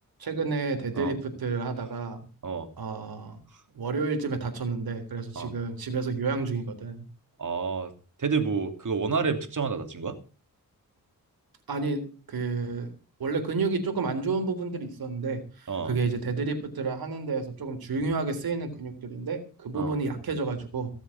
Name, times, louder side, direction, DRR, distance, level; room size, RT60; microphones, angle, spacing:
voice 1, 0.2-2.3 2.8-3.4 3.7-7.0 11.7-12.0 12.3-12.9 13.2-20.9, right 4 dB, 80° right, 7 dB, 3.7 m, -30 dB
voice 2, 7.4-7.9 8.2-10.2 15.7-16.0 19.7-20.0, right 5 dB, 60° right, 7 dB, 2.8 m, -29 dB
17.5 x 7.3 x 7.2 m, 0.37 s
cardioid pair, 60°, 36 cm